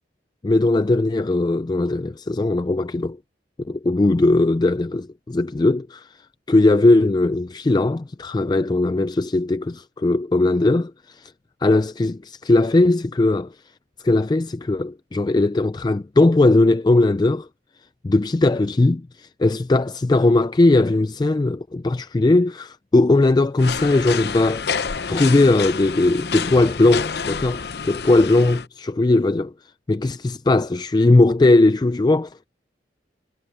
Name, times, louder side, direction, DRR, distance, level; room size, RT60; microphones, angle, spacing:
voice 1, 0.4-3.2 3.6-6.1 6.5-11.3 11.6-13.5 14.0-17.5 18.0-24.8 25.1-29.5 29.9-32.5, left 2 dB, 25° left, 0.3 m, -19 dB
sound 1, 23.6-28.7, left 6 dB, 60° left, 0.7 m, -28 dB
head